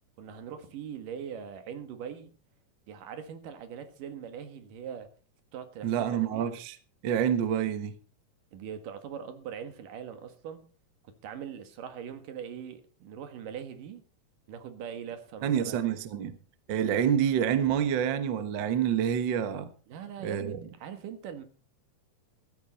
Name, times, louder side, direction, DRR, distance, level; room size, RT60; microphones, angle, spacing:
voice 1, 0.2-2.3 2.9-5.1 5.5-6.5 8.5-10.6 11.2-14.0 14.5-15.9 19.9-21.4, right 8 dB, 85° right, 3.3 m, -41 dB
voice 2, 5.8-6.8 7.0-7.9 15.4-16.4 16.7-19.7 20.2-20.6, right 9 dB, 55° right, 1.4 m, -27 dB
15.0 x 14.5 x 4.2 m
omnidirectional pair, 3.7 m